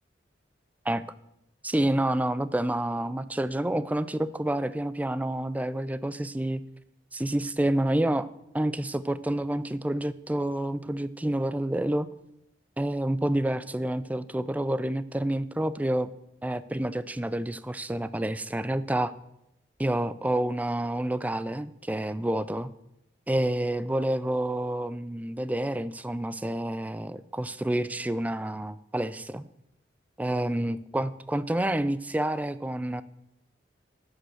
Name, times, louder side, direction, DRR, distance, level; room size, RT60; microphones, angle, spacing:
voice 1, 1.6-6.6 7.1-8.3 8.5-12.1 12.8-16.1 16.4-19.1 19.8-22.7 23.3-29.4 30.2-33.0, right 1 dB, 10° right, 15 dB, 0.3 m, -28 dB
10.0 x 5.3 x 7.8 m, 0.81 s
head